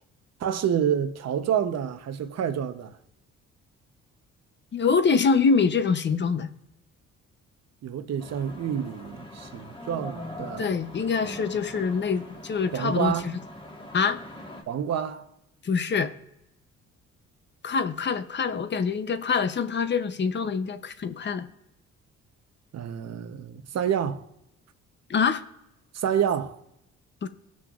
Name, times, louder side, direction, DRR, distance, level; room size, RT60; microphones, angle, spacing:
voice 1, 0.4-2.9 7.8-10.7 12.7-13.3 14.7-15.3 22.7-24.3 25.9-26.6, right 8 dB, 60° right, 0.9 m, -28 dB
voice 2, 4.7-6.5 10.6-13.4 13.9-14.2 15.6-16.1 17.6-21.5 25.1-25.4 27.2-27.3, left 5 dB, 35° left, 0.7 m, -25 dB
sound 1, 8.2-14.6, left 1 dB, 15° left, 1.6 m, -42 dB
18.5 x 6.3 x 2.4 m
cardioid pair, 90°, 30 cm